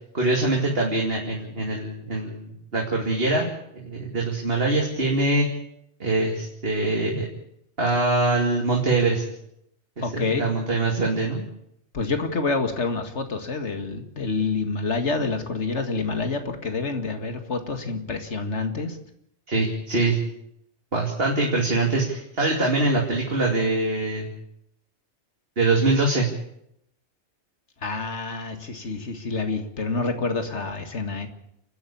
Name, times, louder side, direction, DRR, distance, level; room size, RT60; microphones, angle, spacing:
voice 1, 0.1-3.5 3.7-5.5 6.0-7.3 7.8-9.2 10.1-11.4 19.5-20.2 20.9-24.3 25.6-26.3, right 2 dB, 55° right, -1 dB, 3.1 m, -23 dB
voice 2, 10.0-10.5 11.9-19.0 27.8-31.3, left 4 dB, 80° left, 7 dB, 2.3 m, -27 dB
30.0 x 10.5 x 8.6 m, 0.75 s
omnidirectional pair, 1.2 m